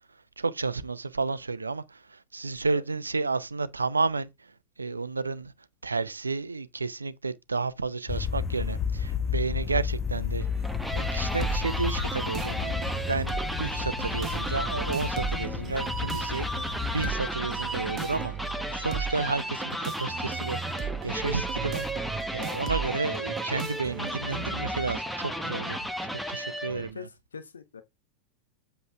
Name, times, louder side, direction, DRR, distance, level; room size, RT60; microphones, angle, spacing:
voice 1, 0.4-4.5 4.8-5.5 5.8-10.5 10.9-21.8 22.3-27.1, right 4 dB, 80° right, 0.7 m, -32 dB
sound 1, 8.1-17.1, left 7 dB, 25° left, 0.9 m, -32 dB
sound 2, 10.4-26.9, equal, ahead, 1.4 m, -34 dB
sound 3, 11.0-25.0, right 8 dB, 30° right, 0.9 m, -38 dB
voice 2, 26.7-27.8, left 6 dB, 70° left, 1.1 m, -43 dB
8.0 x 6.9 x 3.4 m
figure-of-eight pair, 90°, 0 cm